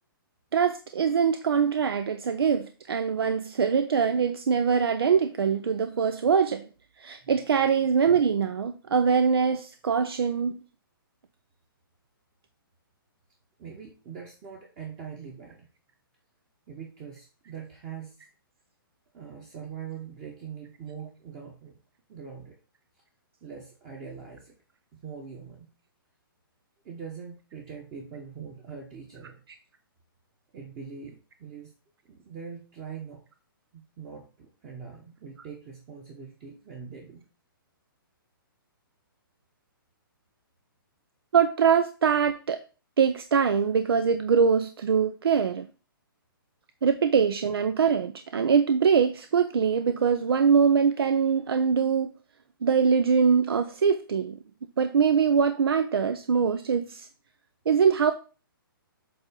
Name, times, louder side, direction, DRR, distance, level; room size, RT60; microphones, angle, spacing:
voice 1, 0.5-6.7 7.0-10.6 41.3-42.6 43.0-45.7 46.8-52.1 52.6-54.4 54.8-57.1 57.7-58.1, right 6 dB, 90° right, 0.5 m, -23 dB
voice 2, 13.6-15.7 16.7-18.2 19.1-21.8 22.1-22.6 23.4-24.5 24.9-25.7 26.8-29.4 30.5-31.7 32.0-33.2 33.7-37.3, right 6 dB, 25° right, 1.1 m, -42 dB
7.7 x 2.8 x 5.2 m
hypercardioid pair, 155°, 12 cm